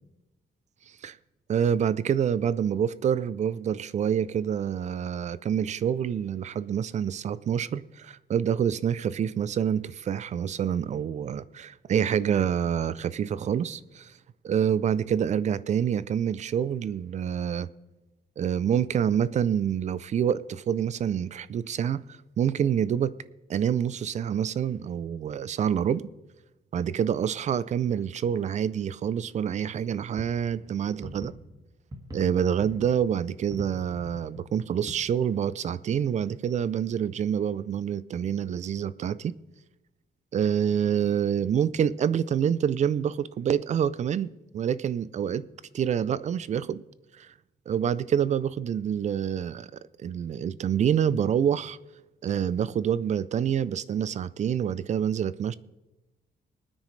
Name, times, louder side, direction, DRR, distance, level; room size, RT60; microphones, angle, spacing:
voice 1, 1.5-14.1 14.4-17.7 18.4-23.1 23.5-26.1 26.7-31.3 32.1-39.3 40.3-45.5 45.7-46.8 47.2-47.3 47.7-49.7 50.0-51.8 52.2-55.5, right 8 dB, 40° right, 0.4 m, -27 dB
sound 1, 30.2-31.6 31.9-32.2 32.5-33.1 33.5-34.4 34.9-35.0 35.9-36.0, equal, 20° right, 1.9 m, -41 dB
22.5 x 9.7 x 3.2 m
wide cardioid pair, 175°, 18 cm